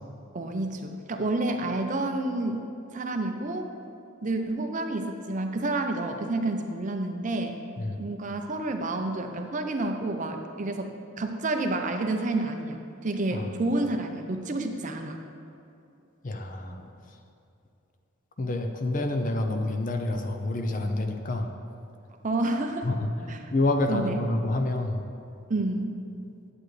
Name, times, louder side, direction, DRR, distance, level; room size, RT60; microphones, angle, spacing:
voice 1, 0.3-2.6 2.9-3.7 4.2-7.5 8.0-15.2 22.2-22.9 23.3-23.4 23.9-24.2 25.5-26.0, right 2 dB, 35° right, 5 dB, 0.6 m, -29 dB
voice 2, 16.2-16.9 18.4-21.5 22.8-25.0, left 2 dB, 40° left, 5 dB, 0.5 m, -28 dB
10.5 x 7.8 x 3.2 m, 2.7 s
head